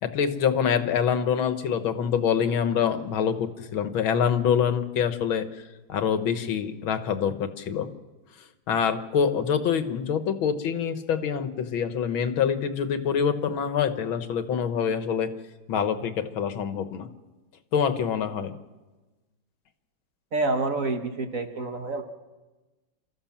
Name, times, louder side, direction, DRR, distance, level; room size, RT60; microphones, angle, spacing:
voice 1, 0.0-5.5 5.9-7.9 8.7-15.3 15.7-17.1 17.7-18.5, left 7 dB, 85° left, 9 dB, 2.0 m, -25 dB
voice 2, 20.3-22.0, right 3 dB, 45° right, 5 dB, 1.6 m, -27 dB
29.0 x 14.0 x 7.3 m, 1.2 s
omnidirectional pair, 2.2 m